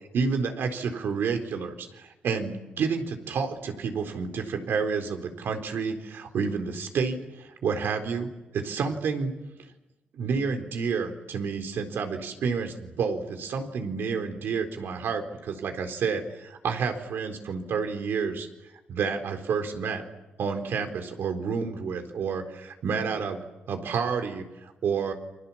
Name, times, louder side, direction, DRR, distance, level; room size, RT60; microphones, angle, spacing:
voice 1, 0.1-9.3 10.1-18.5 18.9-20.0 20.4-23.4 23.7-25.1, right 5 dB, 80° right, 5 dB, 4.0 m, -29 dB
29.5 x 25.5 x 7.3 m, 1.0 s
wide cardioid pair, 140°, 4 cm